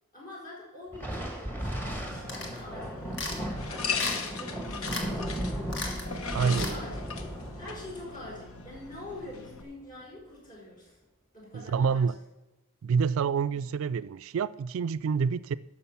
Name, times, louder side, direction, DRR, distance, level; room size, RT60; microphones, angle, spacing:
voice 1, 0.1-6.1 6.3-11.0 11.3-12.2 13.5-13.6, left 1 dB, 35° left, 4.4 m, -46 dB
Thunder, 0.9-9.7, equal, 10° left, 1.6 m, -36 dB
sound 1, 1.6-9.6, left 5 dB, 75° left, 1.1 m, -39 dB
sound 2, 2.3-2.6 3.1-3.4 4.0-4.4 4.9-5.1 5.3-5.4 5.7-6.1 6.5-6.8, left 3 dB, 50° left, 1.9 m, -35 dB
voice 2, 6.3-6.8 11.5-12.2 12.8-15.6, right 6 dB, 65° right, 0.3 m, -27 dB
11.0 x 6.6 x 5.8 m
head